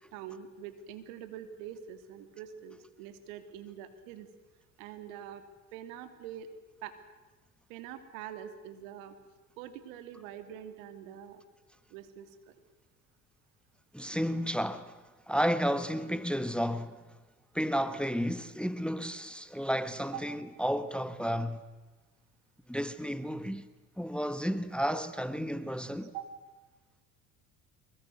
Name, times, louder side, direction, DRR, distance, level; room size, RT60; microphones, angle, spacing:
voice 1, 0.1-4.3 4.8-5.4 5.7-6.5 6.8-7.0 7.7-9.2 9.6-11.4 11.9-12.5 20.1-20.2 26.0-26.3, right 10 dB, 75° right, 3.0 m, -44 dB
voice 2, 13.9-15.0 15.3-17.0 17.5-21.6 22.7-23.7 24.0-26.1, equal, ahead, 1.4 m, -32 dB
24.5 x 22.0 x 9.5 m
hypercardioid pair, 70°, 40 cm